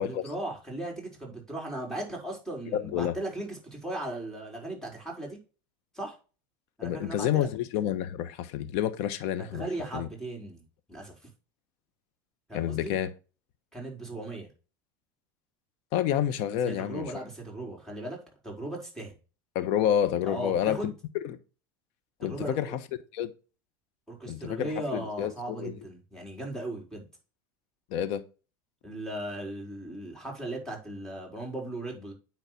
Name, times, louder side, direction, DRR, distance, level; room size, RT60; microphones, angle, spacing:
voice 1, 0.0-5.4 5.9-6.2 6.8-7.5 9.5-10.6 10.9-11.1 12.5-12.9 13.7-14.5 16.6-18.2 18.4-19.1 20.2-20.9 22.2-22.8 24.1-27.0 28.8-32.1, right 1 dB, 5° left, 4.5 m, -37 dB
voice 2, 2.7-3.2 6.8-9.7 9.9-10.1 12.5-13.1 15.9-17.1 19.5-20.9 21.2-21.4 22.2-22.8 23.1-23.3 24.3-25.8 27.9-28.2, left 10 dB, 60° left, 1.2 m, -29 dB
9.4 x 3.9 x 5.8 m
supercardioid pair, 105°, 11 cm